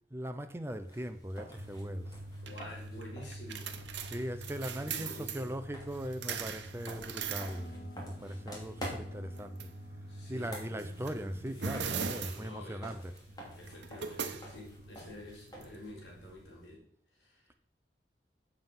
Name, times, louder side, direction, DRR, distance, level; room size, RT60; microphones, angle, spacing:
voice 1, 0.1-2.2 4.0-9.7 10.3-13.1, equal, 15° right, 0.7 m, -39 dB
sound 1, 0.7-16.7, equal, 20° left, 2.6 m, -50 dB
sound 2, 1.6-16.3, right 5 dB, 90° right, 0.9 m, -42 dB
voice 2, 2.4-3.7 4.5-5.5 10.1-10.5 11.8-12.9 13.6-16.8 17.2-17.5, left 1 dB, 85° left, 3.4 m, -49 dB
sound 3, 6.2-10.8, right 1 dB, 55° left, 1.1 m, -56 dB
7.5 x 7.4 x 5.6 m
head